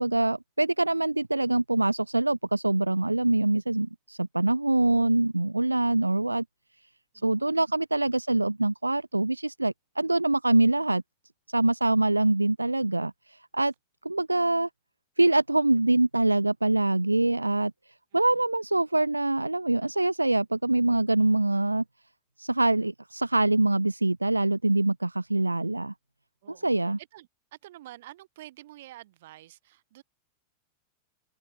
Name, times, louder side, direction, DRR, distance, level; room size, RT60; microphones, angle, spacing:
voice 1, 0.0-6.4 7.2-11.0 11.5-13.7 14.0-14.7 15.2-17.7 18.1-21.8 22.4-25.9 26.6-27.0, right 2 dB, 85° right, 0.5 m, -24 dB
voice 2, 7.1-7.5 18.1-18.4 26.4-30.0, right 15 dB, 55° right, 7.6 m, -49 dB
figure-of-eight pair, 90°, 0 cm